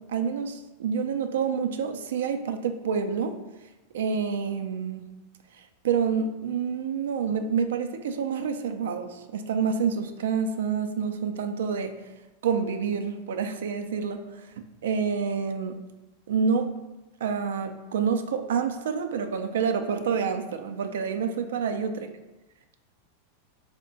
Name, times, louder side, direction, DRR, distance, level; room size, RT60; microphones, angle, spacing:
voice 1, 0.1-3.4 3.9-5.0 5.8-12.0 12.4-14.4 14.8-15.8 16.3-16.8 17.2-22.0, right 6 dB, 75° right, 7 dB, 0.3 m, -28 dB
3.5 x 2.1 x 3.8 m, 1.1 s
hypercardioid pair, 105°, 0 cm